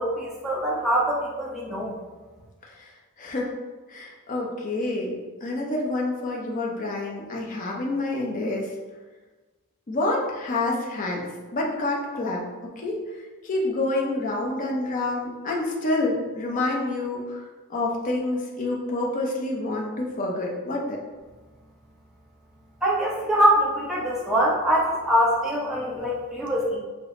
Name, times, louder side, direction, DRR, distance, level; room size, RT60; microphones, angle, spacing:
voice 1, 0.0-1.9 22.8-26.8, equal, ahead, -7 dB, 0.8 m, -23 dB
voice 2, 3.2-3.5 3.9-5.1 5.4-8.7 9.9-11.3 11.5-12.4 12.8-13.0 13.4-17.4 17.7-21.0, left 2 dB, 35° left, -2 dB, 0.6 m, -27 dB
5.0 x 2.0 x 3.6 m, 1.3 s
head